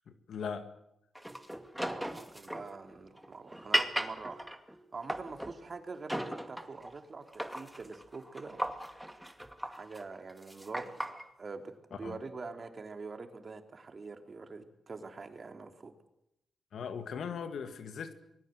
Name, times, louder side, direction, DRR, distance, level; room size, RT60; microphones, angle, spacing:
voice 1, 0.1-0.7 11.9-12.2 16.7-18.1, left 6 dB, 80° left, 2.1 m, -39 dB
sound 1, 1.2-5.6 6.1-7.0 7.3-11.2, equal, 5° right, 2.4 m, -37 dB
voice 2, 1.8-4.4 4.9-9.2 9.6-15.9, right 4 dB, 50° right, 3.3 m, -45 dB
24.5 x 20.0 x 7.8 m
cardioid pair, 55°, 0 cm